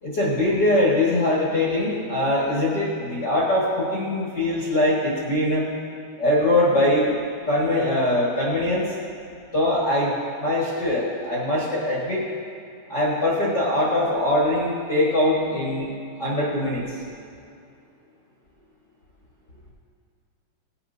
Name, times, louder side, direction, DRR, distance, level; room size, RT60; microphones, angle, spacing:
voice 1, 0.0-5.7 6.2-7.2 7.5-8.9 9.5-12.2 12.9-15.9 16.2-17.0, left 1 dB, 65° left, -7 dB, 1.0 m, -22 dB
18.0 x 10.0 x 2.7 m, 2.6 s
omnidirectional pair, 4.8 m